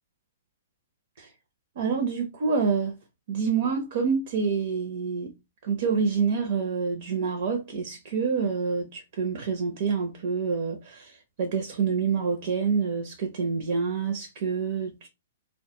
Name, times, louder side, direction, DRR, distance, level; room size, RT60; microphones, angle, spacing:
voice 1, 1.8-3.0 3.3-5.3 5.6-15.1, right 5 dB, 55° right, 0.6 m, -27 dB
2.2 x 2.1 x 2.8 m
hypercardioid pair, 130°, 0 cm